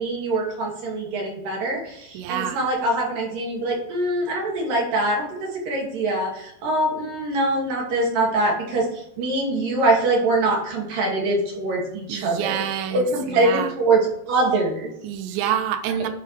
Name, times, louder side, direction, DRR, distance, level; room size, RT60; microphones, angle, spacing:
voice 1, 0.0-8.9 9.2-12.6 12.9-14.0 14.3-14.9, right 2 dB, 50° right, -2 dB, 3.8 m, -23 dB
voice 2, 2.1-2.6 12.1-13.7 15.0-16.1, right 10 dB, 80° right, 7 dB, 3.0 m, -27 dB
11.5 x 5.1 x 4.8 m, 0.77 s
omnidirectional pair, 5.4 m